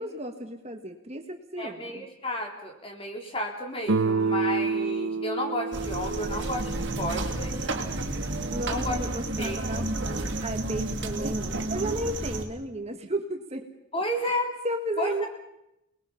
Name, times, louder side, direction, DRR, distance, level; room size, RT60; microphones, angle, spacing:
voice 1, 0.0-2.1 6.4-6.5 8.5-13.7 14.2-14.4 14.6-15.3, right 1 dB, 30° right, 5 dB, 1.6 m, -34 dB
voice 2, 1.6-7.7 8.7-9.0 9.4-9.9 13.9-14.5 15.0-15.3, left 1 dB, 25° left, 2 dB, 3.8 m, -32 dB
Guitar, 3.9-8.7, right 4 dB, 90° right, 0.9 m, -30 dB
sound 1, 5.7-12.4, right 2 dB, 60° right, 2.8 m, -31 dB
29.0 x 20.0 x 5.8 m, 0.85 s
head